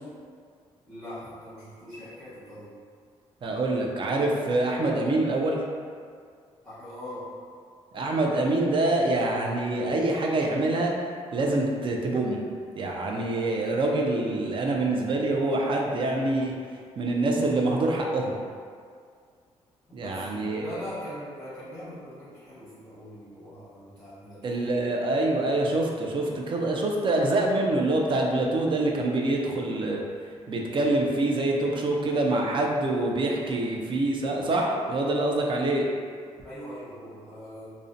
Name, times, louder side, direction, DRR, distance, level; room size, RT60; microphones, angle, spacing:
voice 1, 0.9-2.8 6.6-7.3 19.9-24.7 36.4-37.6, equal, 5° left, -13 dB, 1.1 m, -41 dB
voice 2, 3.4-5.6 7.9-10.9 11.3-12.4 12.8-16.5 17.0-18.3 19.9-20.6 24.4-30.0 30.5-35.9, right 2 dB, 45° right, 0 dB, 0.4 m, -25 dB
2.4 x 2.1 x 2.5 m, 2.1 s
cardioid pair, 85°, 12 cm